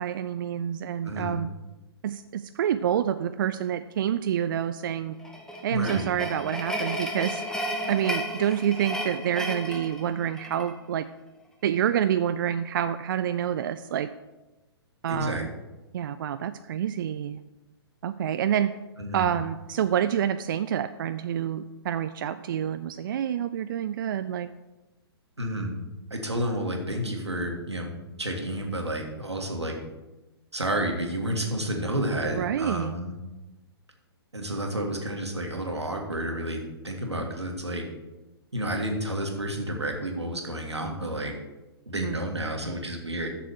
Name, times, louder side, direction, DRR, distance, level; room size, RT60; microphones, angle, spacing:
voice 1, 0.0-1.5 2.0-5.2 5.6-7.4 7.9-11.0 11.6-14.1 15.0-15.5 15.9-17.4 18.0-18.7 19.1-24.5 32.3-32.9 42.0-42.2, right 9 dB, 50° right, 11 dB, 0.4 m, -27 dB
voice 2, 1.0-1.3 5.7-6.1 15.1-15.4 19.0-19.3 25.4-25.7 26.1-29.8 30.5-33.1 34.3-37.8 38.5-41.3 41.9-43.3, right 1 dB, 90° right, 2 dB, 1.8 m, -30 dB
sound 1, 5.2-10.7, equal, 5° left, 0.9 m, -33 dB
7.3 x 6.7 x 6.5 m, 1.1 s
figure-of-eight pair, 120°, 14 cm